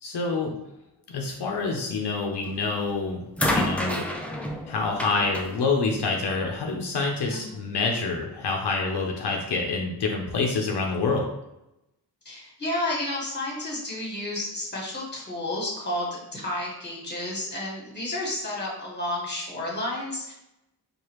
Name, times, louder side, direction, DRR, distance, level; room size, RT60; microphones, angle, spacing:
voice 1, 0.0-0.5 1.1-3.2 3.5-4.1 4.7-11.3, left 4 dB, 80° left, 0 dB, 0.6 m, -27 dB
sound 1, 2.4-2.8 3.4-6.6 7.7-7.8, left 1 dB, 5° left, 0.4 m, -30 dB
voice 2, 12.2-20.3, left 1 dB, 25° left, -4 dB, 1.4 m, -31 dB
4.8 x 2.4 x 2.9 m, 0.90 s
wide cardioid pair, 115°, 39 cm